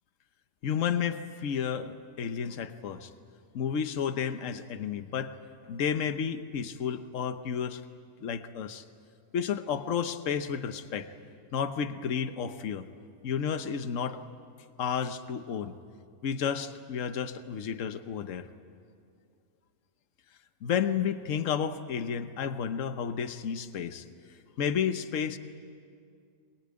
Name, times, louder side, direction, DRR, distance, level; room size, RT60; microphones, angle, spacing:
voice 1, 0.6-3.1 3.5-5.3 5.6-7.8 8.2-8.8 9.3-11.1 11.5-12.9 13.2-14.2 14.8-15.8 16.2-18.5 20.6-24.1 24.6-25.4, left 7 dB, 60° left, 10 dB, 1.3 m, -31 dB
22.5 x 22.0 x 8.9 m, 2.4 s
omnidirectional pair, 1.5 m